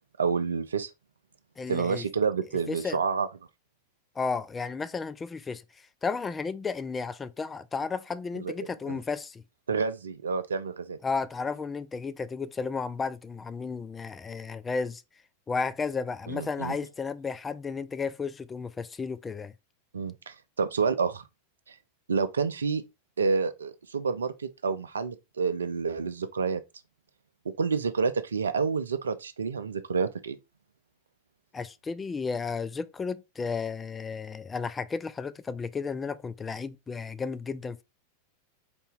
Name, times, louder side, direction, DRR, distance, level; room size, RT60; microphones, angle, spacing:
voice 1, 0.2-0.9 1.7-3.3 8.3-8.5 8.9-9.0 9.7-11.0 16.3-16.8 19.9-21.3 21.7-21.8 22.1-22.8 23.2-26.6 27.6-30.4, right 5 dB, 70° right, 0.4 m, -29 dB
voice 2, 1.6-2.1 2.7-3.0 4.2-9.4 11.0-15.0 15.5-19.5 31.5-37.8, left 4 dB, 15° left, 0.3 m, -33 dB
4.2 x 2.7 x 3.5 m
figure-of-eight pair, 90°, 0 cm